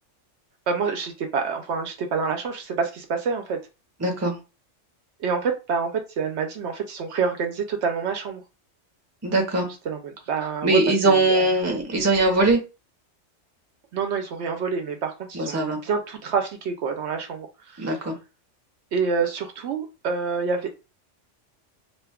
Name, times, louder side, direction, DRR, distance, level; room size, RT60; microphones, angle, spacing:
voice 1, 0.7-3.6 5.2-8.4 9.9-11.5 13.9-17.9 18.9-20.7, right 5 dB, 70° right, 5 dB, 0.8 m, -27 dB
voice 2, 4.0-4.4 9.2-9.7 10.6-12.6 15.3-15.8 17.8-18.2, right 2 dB, 15° right, 2 dB, 0.7 m, -21 dB
2.5 x 2.3 x 3.4 m, 0.28 s
omnidirectional pair, 1.3 m